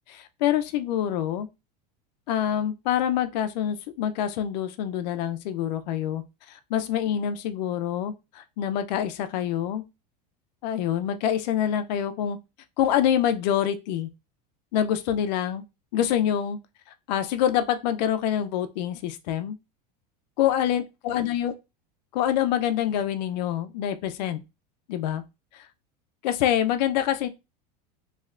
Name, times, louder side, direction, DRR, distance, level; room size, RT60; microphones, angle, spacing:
voice 1, 0.1-1.5 2.3-6.2 6.5-9.8 10.6-12.4 12.8-14.1 14.7-15.6 15.9-16.6 17.1-19.6 20.4-21.5 22.1-24.4 24.9-25.2 25.5-25.6 26.2-27.3, left 10 dB, 85° left, 0.4 m, -26 dB
3.1 x 2.8 x 2.4 m
supercardioid pair, 150°, 21 cm